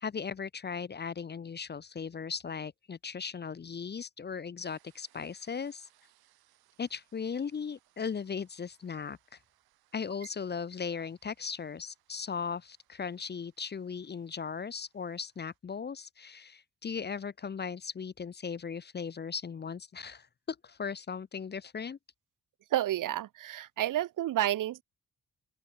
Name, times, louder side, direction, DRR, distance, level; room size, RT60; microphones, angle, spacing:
voice 1, 0.0-5.9 6.8-9.2 9.9-22.0, left 6 dB, 30° left, 0.5 m, -37 dB
sound 1, 4.6-15.6, right 15 dB, 85° right, 6.0 m, -71 dB
voice 2, 22.7-24.8, right 13 dB, 60° right, 0.6 m, -30 dB
open air
supercardioid pair, 50°, 36 cm